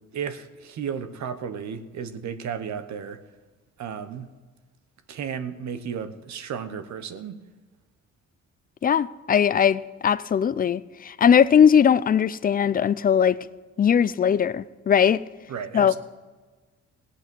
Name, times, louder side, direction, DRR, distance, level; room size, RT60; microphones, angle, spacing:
voice 1, 0.1-3.2 3.8-4.3 5.1-7.4 15.5-16.0, right 7 dB, 65° right, 1.0 m, -33 dB
voice 2, 8.8-13.5 13.8-15.2 15.7-15.9, left 8 dB, 30° left, 0.4 m, -20 dB
17.0 x 8.2 x 6.2 m
cardioid pair, 90°, 30 cm